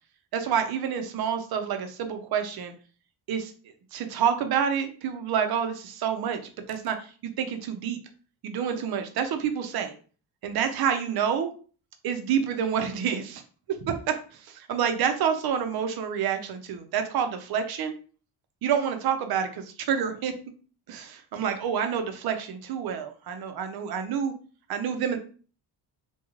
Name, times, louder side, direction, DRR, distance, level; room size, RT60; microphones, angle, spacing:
voice 1, 0.3-2.7 3.3-3.5 3.9-6.4 6.7-8.0 8.4-9.9 10.4-11.5 12.0-13.4 13.9-17.9 18.6-20.3 20.9-24.3 24.7-25.2, right 8 dB, 60° right, 7 dB, 0.5 m, -28 dB
2.4 x 2.2 x 3.0 m, 0.39 s
cardioid pair, 145°, 42 cm